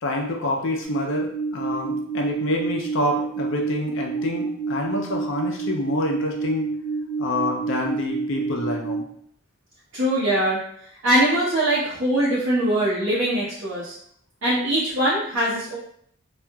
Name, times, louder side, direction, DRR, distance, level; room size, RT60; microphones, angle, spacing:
voice 1, 0.0-6.7 7.2-9.0, left 1 dB, 65° left, 1 dB, 0.4 m, -27 dB
sound 1, 0.8-9.0, right 4 dB, 5° left, 0.6 m, -28 dB
voice 2, 9.9-10.6 11.0-13.9 14.4-15.8, right 1 dB, 65° right, -10 dB, 0.8 m, -22 dB
2.7 x 2.4 x 2.2 m, 0.65 s
head